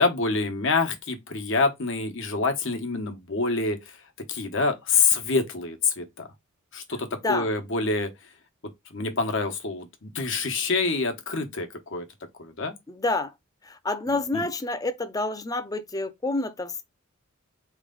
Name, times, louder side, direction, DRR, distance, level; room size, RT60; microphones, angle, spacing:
voice 1, 0.0-4.0 4.3-6.3 6.7-8.1 8.9-12.1 12.4-12.7 14.1-14.4, left 4 dB, 65° left, 1.1 m, -26 dB
voice 2, 7.1-7.5 12.9-13.3 13.6-16.8, left 2 dB, 15° left, 0.5 m, -28 dB
4.2 x 3.2 x 3.8 m
head